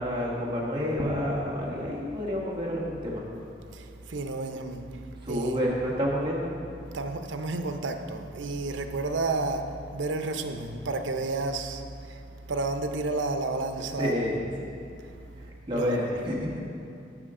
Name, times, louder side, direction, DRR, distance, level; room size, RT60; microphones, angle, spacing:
voice 1, 0.0-3.2 5.2-6.5 14.0-14.8 15.7-16.6, equal, 25° right, 1.5 m, -29 dB
voice 2, 4.1-4.8 5.3-5.6 6.9-9.7 9.9-11.8 12.5-14.4 15.7-16.0, right 3 dB, 80° right, 0.7 m, -31 dB
12.0 x 7.5 x 3.7 m
head